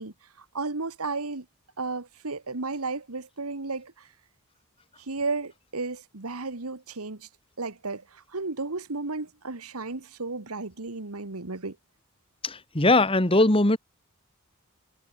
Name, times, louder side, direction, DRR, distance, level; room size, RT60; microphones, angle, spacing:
voice 1, 0.0-1.4 1.8-4.1 5.0-7.3 7.6-11.8, right 3 dB, 85° right, 1.7 m, -33 dB
voice 2, 12.4-13.8, left 2 dB, 25° left, 1.9 m, -20 dB
head